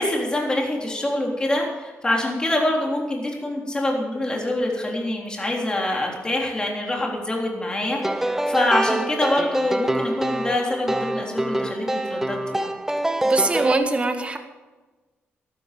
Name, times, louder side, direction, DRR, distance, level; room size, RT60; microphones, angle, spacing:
voice 1, 0.0-12.7, left 1 dB, 20° left, -1 dB, 3.6 m, -25 dB
sound 1, 8.0-13.8, right 1 dB, 10° right, 0.9 m, -25 dB
voice 2, 13.2-14.4, right 3 dB, 30° right, 6 dB, 1.7 m, -22 dB
14.5 x 12.5 x 5.3 m, 1.2 s
wide cardioid pair, 125°, 4 cm